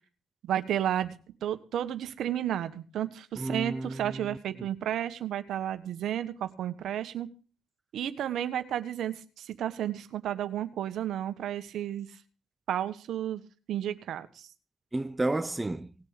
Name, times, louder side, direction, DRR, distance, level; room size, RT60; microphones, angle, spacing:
voice 1, 0.4-1.1 1.4-7.3 7.9-12.1 12.7-13.4 13.7-14.5, right 11 dB, 75° right, 1.3 m, -32 dB
voice 2, 3.4-4.4 14.9-15.9, right 2 dB, 15° right, 0.6 m, -32 dB
18.5 x 7.5 x 6.6 m
cardioid pair, 90°, 0 cm